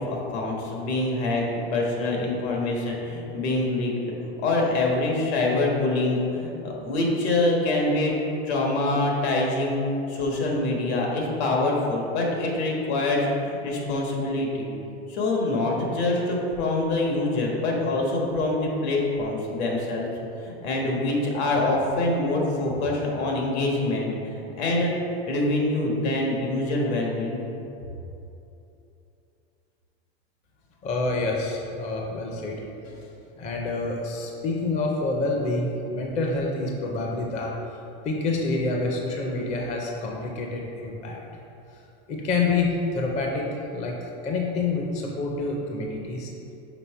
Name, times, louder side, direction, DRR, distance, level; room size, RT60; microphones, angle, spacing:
voice 1, 0.0-4.1 4.4-8.1 8.4-9.8 10.1-14.7 15.1-20.0 20.4-24.1 24.3-24.9 25.3-27.4, left 2 dB, 75° left, -1 dB, 1.4 m, -25 dB
voice 2, 30.8-32.6 33.4-37.5 38.0-41.2 42.1-46.3, left 3 dB, 20° left, -1 dB, 0.5 m, -27 dB
5.9 x 3.6 x 4.5 m, 2.9 s
supercardioid pair, 145°, 33 cm